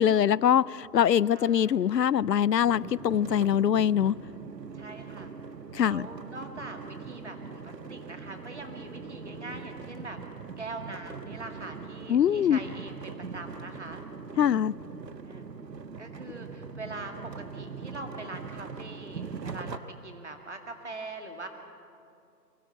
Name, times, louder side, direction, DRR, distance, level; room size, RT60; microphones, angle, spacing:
voice 1, 0.0-4.1 5.7-6.1 12.1-12.6 14.4-14.7, left 9 dB, 80° left, 23 dB, 0.6 m, -23 dB
voice 2, 1.3-2.0 4.7-5.4 5.8-10.2 10.6-14.0 15.2-15.5 16.0-21.5, right 2 dB, 45° right, 5 dB, 2.2 m, -42 dB
sound 1, 2.6-19.8, right 5 dB, 80° right, 1.3 m, -42 dB
23.0 x 17.5 x 8.1 m, 2.6 s
figure-of-eight pair, 175°, 49 cm